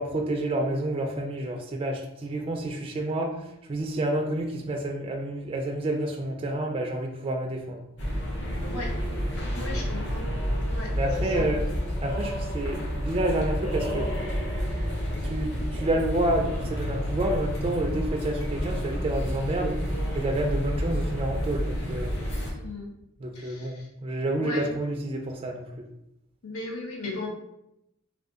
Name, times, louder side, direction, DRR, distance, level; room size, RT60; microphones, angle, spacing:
voice 1, 0.0-7.8 9.6-9.8 10.9-11.6 12.0-14.1 15.2-19.8 20.1-22.1 23.2-25.9, right 1 dB, 25° right, 2 dB, 0.3 m, -29 dB
sound 1, 8.0-22.5, equal, 60° left, 0.9 m, -30 dB
voice 2, 9.5-10.2 10.7-11.8 22.6-22.9 23.3-23.9 24.4-24.7 26.4-27.3, left 2 dB, 90° left, 0 dB, 0.8 m, -37 dB
2.6 x 2.4 x 3.5 m, 0.83 s
head